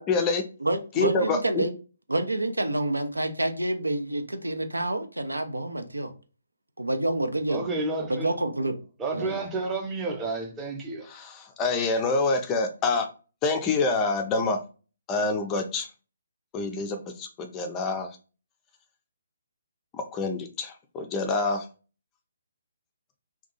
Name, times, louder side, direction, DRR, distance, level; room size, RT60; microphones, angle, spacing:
voice 1, 0.0-0.4 1.0-1.6 11.1-13.1 13.4-14.6 15.1-15.9 16.5-18.1 19.9-21.6, left 3 dB, 20° left, 0.4 m, -26 dB
voice 2, 0.6-1.7 2.1-6.1 6.8-7.8 8.1-8.7 9.1-9.4, right 1 dB, 80° right, 0.5 m, -28 dB
voice 3, 7.5-8.3 9.0-11.1, right 3 dB, 15° right, 0.7 m, -30 dB
2.7 x 2.3 x 3.8 m
figure-of-eight pair, 135°, 0 cm